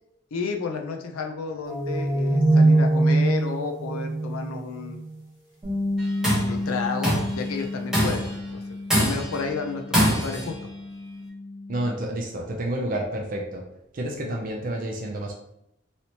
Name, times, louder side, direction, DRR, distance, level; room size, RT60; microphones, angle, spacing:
voice 1, 0.3-5.0 6.4-8.3 8.5-8.6 9.0-10.5, left 5 dB, 90° left, 4 dB, 0.5 m, -31 dB
sound 1, 1.7-5.1, right 2 dB, 20° left, 1.0 m, -21 dB
Bass guitar, 5.6-11.9, left 2 dB, 20° right, 1.3 m, -32 dB
Tools, 6.0-6.5 7.0-7.4 7.9-8.4 8.9-9.4 9.9-10.5, equal, 5° right, 0.8 m, -23 dB
voice 2, 11.7-13.6 13.9-15.3, right 1 dB, 40° right, 1 dB, 0.4 m, -29 dB
3.2 x 2.8 x 2.8 m, 0.81 s
head